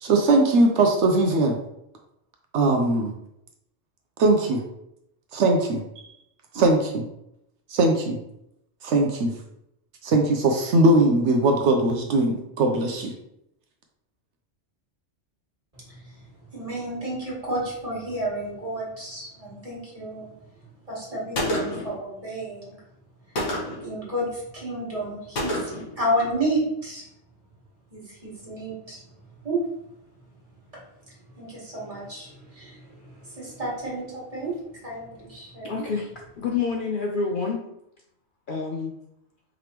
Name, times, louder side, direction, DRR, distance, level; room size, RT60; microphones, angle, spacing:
voice 1, 0.0-1.6 2.5-3.1 4.2-4.6 5.3-5.8 6.5-7.0 7.7-8.2 8.8-9.3 10.0-13.1, right 2 dB, 70° right, 3 dB, 0.9 m, -20 dB
voice 2, 15.9-16.2 16.5-20.3 20.9-22.8 23.8-27.0 27.9-29.0 29.4-29.6 31.4-35.8, right 1 dB, 30° right, -6 dB, 1.7 m, -31 dB
Gunshot gunfire, 21.3-21.9 23.4-23.9 25.4-25.9, left 1 dB, 80° left, 1.5 m, -28 dB
voice 3, 35.6-36.1 36.4-37.6 38.5-38.9, left 5 dB, 60° left, 1 dB, 0.6 m, -27 dB
4.9 x 3.3 x 2.9 m, 0.80 s
omnidirectional pair, 1.2 m